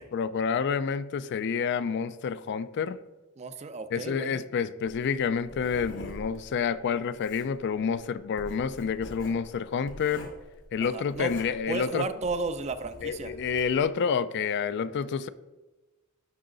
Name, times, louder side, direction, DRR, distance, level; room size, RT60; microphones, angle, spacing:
voice 1, 0.1-3.0 3.9-10.3 10.7-12.1 13.0-15.3, left 6 dB, 50° left, 14 dB, 0.3 m, -29 dB
voice 2, 3.4-4.4 10.8-11.3 11.7-13.3, right 3 dB, 30° right, 11 dB, 0.4 m, -33 dB
Writing, 4.9-13.8, left 1 dB, 75° left, 1.8 m, -46 dB
11.5 x 3.9 x 3.8 m, 1.1 s
head